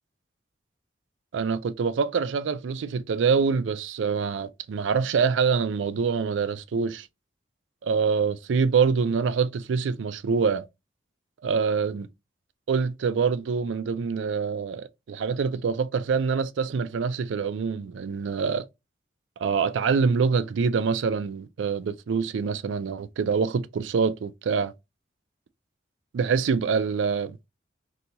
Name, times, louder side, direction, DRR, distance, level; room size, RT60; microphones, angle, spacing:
voice 1, 1.3-7.1 7.8-10.6 11.4-12.1 12.7-18.7 19.4-24.7 26.1-27.4, right 5 dB, 85° right, 0.4 m, -25 dB
2.8 x 2.3 x 3.8 m
head